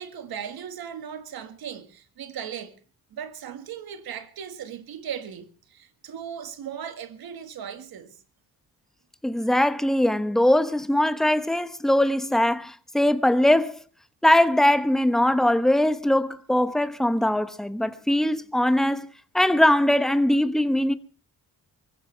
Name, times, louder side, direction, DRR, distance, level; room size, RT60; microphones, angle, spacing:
voice 1, 0.0-2.7 3.1-8.2, right 8 dB, 85° right, 1.7 m, -37 dB
voice 2, 9.2-13.8 14.2-20.9, left 1 dB, ahead, 1.0 m, -21 dB
24.0 x 15.0 x 3.3 m
cardioid pair, 100°, 36 cm